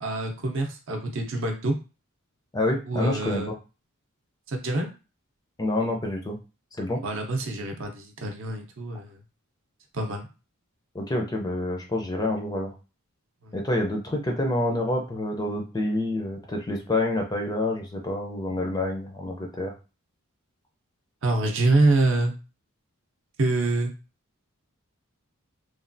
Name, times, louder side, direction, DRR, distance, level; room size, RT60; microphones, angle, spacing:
voice 1, 0.0-1.8 2.8-3.5 4.5-4.9 7.0-9.1 9.9-10.3 13.4-13.6 21.2-22.3 23.4-23.9, right 2 dB, 60° right, 3 dB, 0.6 m, -25 dB
voice 2, 2.5-3.4 5.6-6.4 6.8-7.0 10.9-12.7 13.5-19.7, left 1 dB, 15° left, 1 dB, 0.4 m, -27 dB
3.1 x 2.2 x 2.6 m, 0.31 s
head